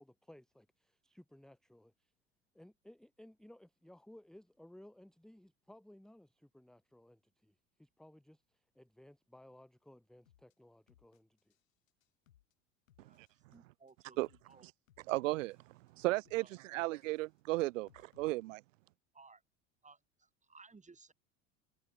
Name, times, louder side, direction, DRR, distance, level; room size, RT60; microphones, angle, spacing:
voice 1, 0.0-2.1 2.5-11.5, left 1 dB, ahead, 1.2 m, -59 dB
sound 1, 10.3-10.5 10.9-11.6 11.9-12.5 12.9-13.6 13.9-14.5 14.9-15.6 15.9-16.5 16.9-18.3, left 12 dB, 80° left, 3.2 m, -69 dB
voice 2, 13.5-14.2 14.5-14.7 16.4-16.8 19.1-19.4 19.8-21.1, right 4 dB, 20° right, 7.7 m, -60 dB
voice 3, 15.1-18.6, right 20 dB, 75° right, 0.5 m, -35 dB
hypercardioid pair, 75°, 39 cm